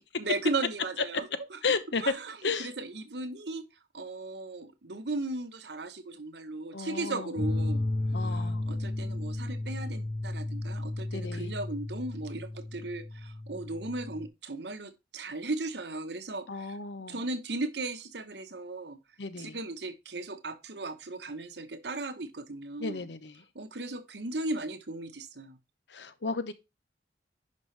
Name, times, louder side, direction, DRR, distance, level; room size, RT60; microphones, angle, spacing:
voice 1, 0.0-1.6 2.0-3.6 3.9-7.8 8.2-16.8 17.1-19.0 19.4-23.0 23.5-25.6, right 2 dB, 70° right, 1.1 m, -36 dB
voice 2, 1.6-2.1 2.4-2.7 6.7-7.3 8.1-8.6 11.1-11.5 16.5-17.2 19.2-19.6 22.8-23.4 25.9-26.5, left 4 dB, 80° left, 0.9 m, -33 dB
sound 1, 7.4-14.3, left 2 dB, 45° left, 1.7 m, -33 dB
10.5 x 5.4 x 3.3 m
head